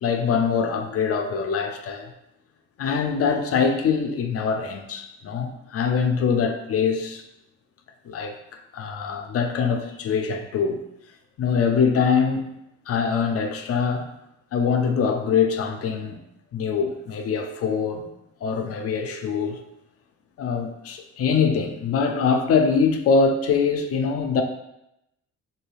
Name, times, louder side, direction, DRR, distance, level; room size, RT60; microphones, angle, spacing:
voice 1, 0.0-2.1 2.8-7.2 8.0-10.8 11.4-12.5 12.9-14.1 14.5-16.2 16.5-18.1 18.4-19.6 20.4-24.4, left 5 dB, 50° left, 6 dB, 0.4 m, -23 dB
3.0 x 2.7 x 2.3 m, 0.86 s
cardioid pair, 90°, 30 cm